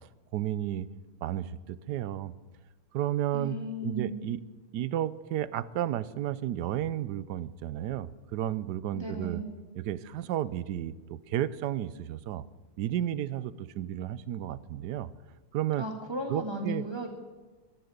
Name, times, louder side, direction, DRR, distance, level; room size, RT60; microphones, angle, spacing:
voice 1, 0.3-0.9 1.2-2.3 2.9-3.6 3.8-4.4 4.7-9.4 9.7-12.4 12.8-15.1 15.5-15.9 16.3-16.8, right 12 dB, 90° right, 17 dB, 1.2 m, -32 dB
voice 2, 3.3-4.2 8.9-9.5 15.8-17.1, right 1 dB, 15° right, 2 dB, 2.2 m, -35 dB
15.0 x 12.0 x 6.6 m, 1.2 s
omnidirectional pair, 1.7 m